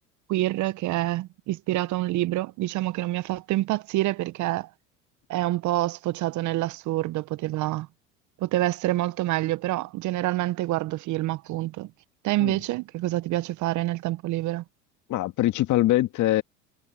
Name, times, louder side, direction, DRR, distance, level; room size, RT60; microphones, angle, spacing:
voice 1, 0.3-4.7 5.3-7.9 8.4-11.9 12.2-14.6, right 16 dB, 50° right, 0.9 m, -27 dB
voice 2, 15.1-16.4, left 15 dB, 50° left, 2.0 m, -23 dB
hypercardioid pair, 85°, 37 cm